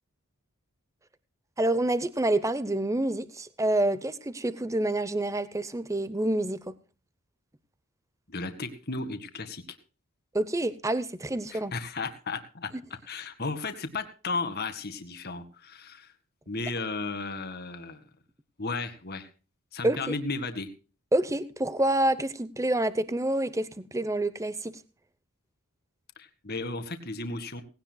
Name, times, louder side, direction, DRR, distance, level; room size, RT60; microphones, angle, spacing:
voice 1, 1.6-6.8 10.3-11.7 19.8-20.1 21.1-24.8, right 1 dB, 15° right, 14 dB, 0.8 m, -27 dB
voice 2, 8.3-9.6 11.5-12.7 13.1-16.1 16.5-18.0 18.6-19.3 19.7-20.7 26.2-27.6, left 3 dB, 45° left, 9 dB, 1.9 m, -34 dB
19.0 x 17.0 x 2.3 m, 0.35 s
head